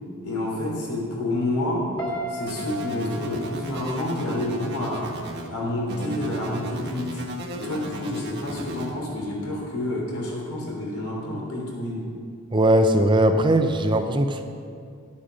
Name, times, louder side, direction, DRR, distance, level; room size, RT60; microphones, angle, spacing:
voice 1, 0.2-1.9 2.3-5.1 5.5-7.2 7.5-12.1, left 1 dB, 90° left, -2 dB, 3.4 m, -29 dB
Piano, 2.0-5.1 5.4-5.8, equal, 20° left, 1.8 m, -35 dB
sound 1, 2.5-5.5 5.9-8.9, right 2 dB, 50° right, 1.3 m, -36 dB
voice 2, 12.5-14.4, right 1 dB, 20° right, 6 dB, 0.6 m, -19 dB
11.0 x 8.6 x 6.3 m, 2.3 s
head